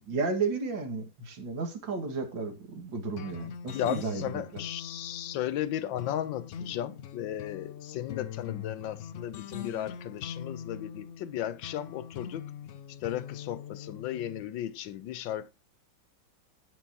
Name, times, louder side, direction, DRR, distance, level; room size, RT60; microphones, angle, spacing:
voice 1, 0.1-4.6, right 4 dB, 85° right, 2.6 m, -33 dB
sound 1, 3.2-14.5, left 8 dB, 65° left, 0.7 m, -43 dB
voice 2, 3.7-12.4 13.0-15.5, left 11 dB, 85° left, 1.5 m, -35 dB
17.5 x 6.1 x 2.9 m
omnidirectional pair, 2.0 m